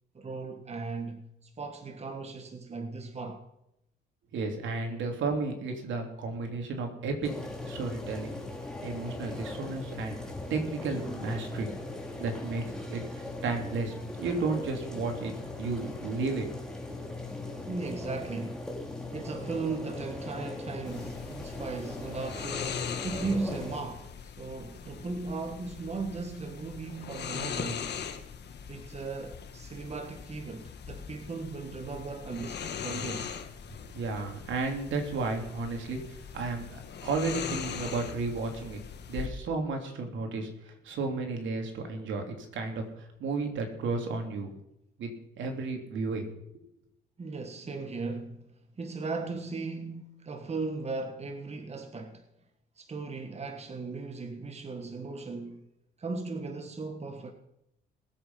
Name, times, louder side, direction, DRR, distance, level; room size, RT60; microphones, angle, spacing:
voice 1, 0.1-3.4 17.5-18.8 19.1-27.9 28.7-33.3 47.2-52.3 52.8-55.6 56.0-57.3, right 3 dB, 30° right, 1.6 m, -37 dB
voice 2, 4.3-7.3 7.7-8.4 8.8-11.7 12.2-12.6 12.9-15.3 15.6-16.5 16.9-17.1 33.7-38.8 39.1-44.5 45.0-46.2, right 3 dB, 75° right, 3.3 m, -33 dB
sound 1, 7.2-23.8, left 2 dB, 5° left, 3.3 m, -39 dB
sound 2, 20.9-39.3, left 7 dB, 60° left, 1.6 m, -40 dB
20.0 x 8.2 x 5.7 m
cardioid pair, 90°, 20 cm